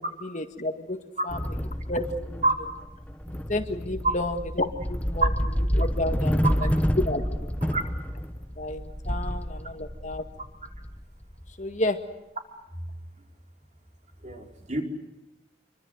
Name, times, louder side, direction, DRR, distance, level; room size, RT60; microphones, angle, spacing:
voice 1, 0.0-2.7 3.5-6.7 7.0-7.5 8.6-10.2 11.6-12.0, left 1 dB, 40° left, 7 dB, 1.9 m, -32 dB
sound 1, 1.3-11.5, equal, 10° left, 1.0 m, -29 dB
voice 2, 14.2-14.8, right 2 dB, 40° right, 3 dB, 4.5 m, -26 dB
26.5 x 24.5 x 8.0 m, 0.93 s
head